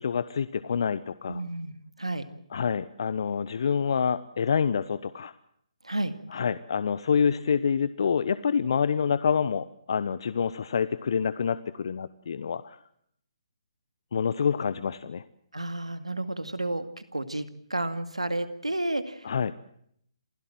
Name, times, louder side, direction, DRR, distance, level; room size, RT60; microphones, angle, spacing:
voice 1, 0.0-1.4 2.5-5.3 6.3-12.8 14.1-15.2 19.2-19.5, left 6 dB, 55° left, 15 dB, 0.9 m, -27 dB
voice 2, 1.3-2.3 5.8-6.2 15.5-19.3, right 1 dB, 90° right, 10 dB, 2.2 m, -31 dB
27.0 x 16.5 x 7.7 m, 0.69 s
figure-of-eight pair, 140°, 3 cm